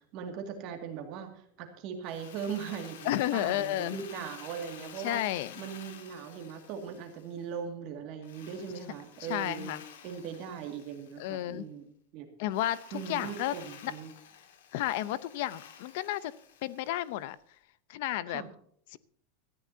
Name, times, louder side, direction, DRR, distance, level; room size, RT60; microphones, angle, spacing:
voice 1, 0.1-5.2 5.6-9.8 10.0-11.8 12.1-12.3 12.9-14.1 18.3-18.5, right 7 dB, 35° right, 5 dB, 2.2 m, -39 dB
Drill, 2.0-7.6 8.2-11.5 12.5-17.3, left 8 dB, 80° left, 2.4 m, -51 dB
voice 2, 3.0-4.0 5.0-5.5 9.3-9.8 11.2-11.7 12.4-13.5 13.8-13.9 14.7-16.3 16.6-17.4 17.9-18.4 18.9-19.0, left 14 dB, 50° left, 17 dB, 0.7 m, -32 dB
18.0 x 14.0 x 2.8 m, 0.63 s
supercardioid pair, 175°, 0 cm